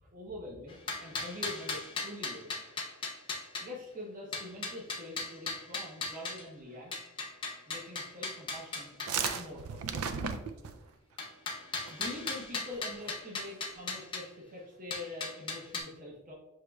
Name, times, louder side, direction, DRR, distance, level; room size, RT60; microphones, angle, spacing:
voice 1, 0.0-2.6 3.6-6.9 7.7-10.1 11.9-16.3, left 1 dB, 35° right, -3 dB, 0.7 m, -45 dB
sound 1, 0.7-3.6 4.3-6.4 6.9-9.4 11.2-14.2 14.9-15.8, left 3 dB, 20° left, 0.6 m, -37 dB
sound 2, 8.8-10.9 11.9-12.2 12.4-12.5 12.7-13.1, right 6 dB, 75° right, 0.4 m, -35 dB
6.4 x 3.0 x 2.2 m, 0.96 s
head